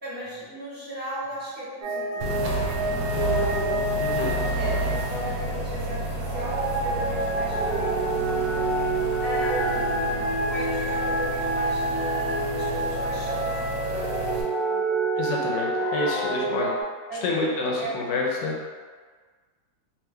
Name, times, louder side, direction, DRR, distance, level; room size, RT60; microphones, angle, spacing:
voice 1, 0.0-3.9 4.6-8.7 9.2-15.0 17.1-17.9, right 1 dB, 10° right, -11 dB, 0.5 m, -35 dB
sound 1, 1.8-5.6 6.2-16.8, right 2 dB, 55° right, 0.6 m, -28 dB
sound 2, 2.2-14.4, right 1 dB, 70° right, 1.0 m, -31 dB
voice 2, 4.0-4.3 15.2-16.7 17.2-18.6, left 3 dB, 75° left, -3 dB, 1.1 m, -28 dB
2.9 x 2.2 x 3.5 m, 1.5 s
omnidirectional pair, 1.9 m